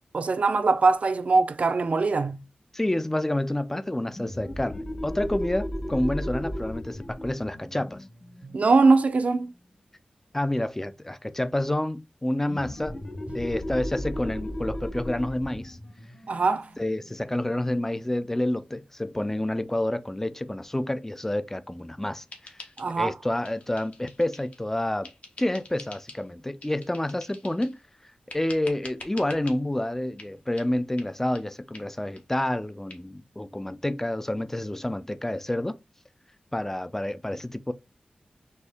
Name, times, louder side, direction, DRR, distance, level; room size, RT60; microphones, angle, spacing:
voice 1, 0.1-2.4 8.4-9.5 13.3-13.4 16.3-16.7 22.8-23.1, right 3 dB, 60° right, 0.5 m, -22 dB
voice 2, 2.7-8.0 10.3-13.0 13.3-15.8 16.8-22.6 23.0-25.1 25.4-27.8 28.3-35.8 36.5-37.7, left 1 dB, 15° left, 0.4 m, -29 dB
sound 1, 4.1-9.4 12.5-17.8, left 1 dB, 35° left, 0.9 m, -36 dB
sound 2, 22.3-23.2 23.4-24.6 25.0-26.2 26.6-27.8 28.3-29.6 30.2-30.3 30.6-30.7 31.0-31.1 31.3-31.4 31.7-31.9 32.1-32.2 32.5-32.6 32.9-33.0, left 3 dB, 65° left, 1.0 m, -45 dB
4.3 x 2.8 x 3.4 m
wide cardioid pair, 85°, 3 cm